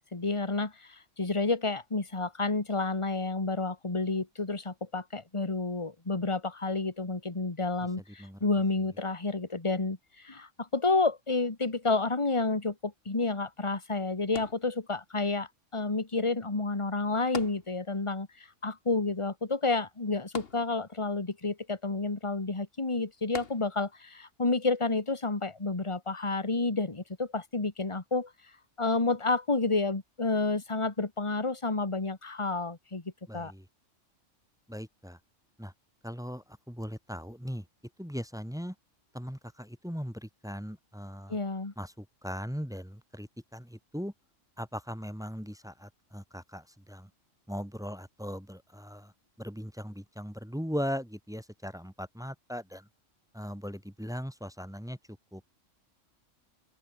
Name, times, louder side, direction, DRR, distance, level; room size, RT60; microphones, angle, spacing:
voice 1, 0.1-15.5 15.7-28.3 28.8-33.0 33.3-33.5 41.3-41.7, left 3 dB, 25° left, 1.9 m, -30 dB
sound 1, 14.4-15.3 17.3-18.2 18.5-18.6 20.4-21.2 23.3-24.1 24.8-24.9, left 5 dB, 50° left, 1.7 m, -42 dB
voice 2, 33.3-33.6 34.7-35.2 35.6-35.7 36.0-37.6 38.0-38.7 39.1-41.4 41.8-44.1 44.6-47.1 47.5-49.1 49.4-52.9 53.3-55.0 55.3-55.4, equal, 5° right, 1.5 m, -39 dB
open air
omnidirectional pair, 1.3 m